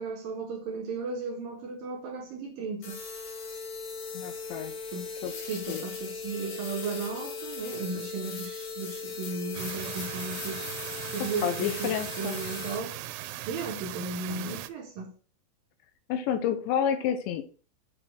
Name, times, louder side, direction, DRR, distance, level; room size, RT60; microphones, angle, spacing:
voice 1, 0.0-3.0 4.9-5.1 5.5-10.7 11.1-13.0 13.5-15.1, right 4 dB, 65° right, 2.6 m, -35 dB
sound 1, 2.8-12.8, left 5 dB, 65° left, 5.0 m, -38 dB
voice 2, 4.1-4.7 5.2-5.3 5.7-5.8 11.2-12.4 14.3-14.6 16.1-17.4, left 9 dB, 80° left, 3.3 m, -30 dB
sound 2, 9.5-14.7, right 14 dB, 90° right, 3.0 m, -39 dB
8.6 x 4.4 x 6.4 m
omnidirectional pair, 5.3 m